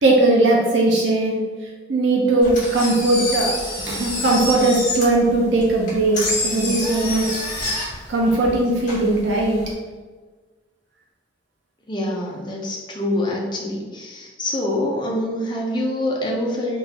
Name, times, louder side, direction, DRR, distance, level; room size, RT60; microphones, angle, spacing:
voice 1, 0.0-1.4 1.9-3.5 3.9-6.2 6.4-7.4 8.1-9.6, right 2 dB, 65° right, -2 dB, 0.5 m, -18 dB
Engine, 2.4-9.7, left 2 dB, 40° left, 1.3 m, -28 dB
voice 2, 11.9-16.8, left 1 dB, 25° left, -2 dB, 0.5 m, -25 dB
3.8 x 2.4 x 2.8 m, 1.4 s
head